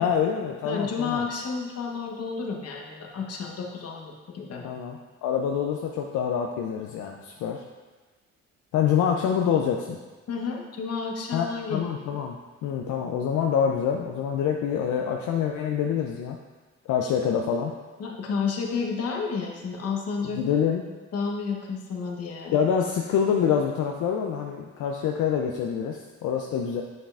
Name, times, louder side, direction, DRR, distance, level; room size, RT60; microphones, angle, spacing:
voice 1, 0.0-1.3 4.6-7.6 8.7-10.0 11.3-16.4 16.9-17.7 20.3-20.9 22.5-26.8, left 8 dB, 75° left, 1 dB, 0.5 m, -26 dB
voice 2, 0.6-4.7 10.3-12.2 18.0-20.4 21.1-22.6, left 5 dB, 55° left, 1 dB, 1.0 m, -31 dB
7.7 x 5.4 x 2.5 m, 1.3 s
cardioid pair, 90°, 30 cm